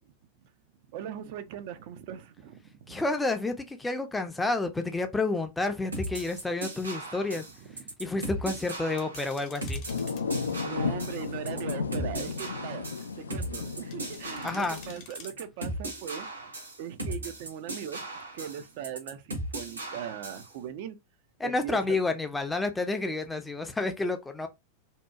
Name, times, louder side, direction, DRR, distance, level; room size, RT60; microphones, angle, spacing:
voice 1, 0.9-2.6 10.6-12.8 13.3-16.3 16.8-18.0 18.3-21.0 21.4-22.0, right 9 dB, 50° right, 0.4 m, -39 dB
voice 2, 2.9-7.4 8.0-9.8 14.4-14.8 21.4-24.5, left 3 dB, 10° left, 0.4 m, -30 dB
sound 1, 5.9-20.5, right 1 dB, 75° right, 0.8 m, -37 dB
sound 2, 9.0-10.3 13.9-15.3, left 6 dB, 40° left, 0.7 m, -50 dB
sound 3, 9.9-15.0, left 5 dB, 75° left, 0.3 m, -34 dB
2.7 x 2.1 x 2.3 m
figure-of-eight pair, 90°, 0 cm